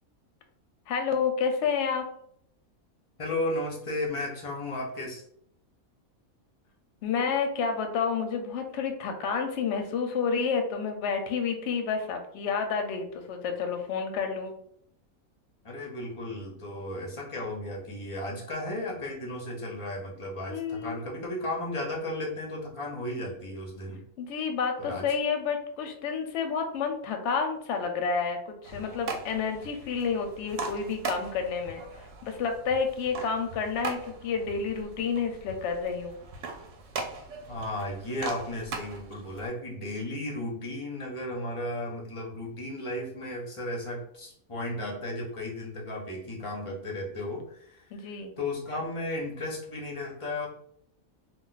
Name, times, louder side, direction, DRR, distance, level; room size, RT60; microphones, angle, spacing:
voice 1, 0.9-2.1 7.0-14.5 20.5-21.0 24.2-31.8 32.2-36.2 47.9-48.3, left 5 dB, 65° left, 4 dB, 0.8 m, -30 dB
voice 2, 3.2-5.2 15.6-24.0 24.8-25.1 37.5-50.5, left 1 dB, 35° left, -2 dB, 0.5 m, -34 dB
sound 1, 28.6-39.5, right 4 dB, 70° right, 0.9 m, -40 dB
2.3 x 2.3 x 3.8 m, 0.68 s
omnidirectional pair, 1.5 m